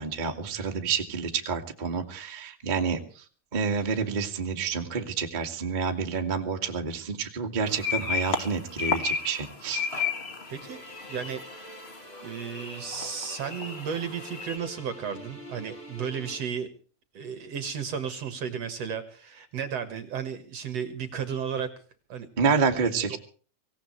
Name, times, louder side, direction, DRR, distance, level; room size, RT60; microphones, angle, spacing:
voice 1, 0.0-3.0 3.5-9.9 22.4-23.2, right 5 dB, 20° right, 3 dB, 1.3 m, -28 dB
sound 1, 7.7-14.6, left 5 dB, 35° left, 0.9 m, -33 dB
sound 2, 10.4-16.4, right 1 dB, 20° left, 3.7 m, -46 dB
voice 2, 10.5-10.8 11.1-11.4 12.2-16.7 17.1-21.7 22.1-22.3 23.1-23.2, right 7 dB, 55° right, 10 dB, 2.2 m, -34 dB
25.0 x 17.5 x 3.2 m, 0.41 s
omnidirectional pair, 4.2 m